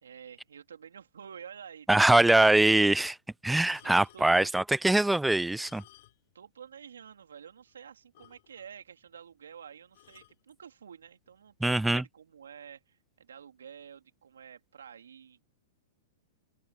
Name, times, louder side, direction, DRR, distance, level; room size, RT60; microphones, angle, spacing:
voice 1, 0.0-2.3 3.8-4.5 6.3-15.4, right 7 dB, 80° right, 2.8 m, -49 dB
voice 2, 1.9-3.2 3.4-5.8 11.6-12.0, right 2 dB, 5° right, 0.3 m, -23 dB
sound 1, 3.6-4.5 5.4-6.4 6.7-6.8 7.3-7.4 7.7-7.8 8.1-8.8 9.9-10.4 11.3-11.5, left 17 dB, 60° left, 2.9 m, -58 dB
open air
hypercardioid pair, 115°, 0 cm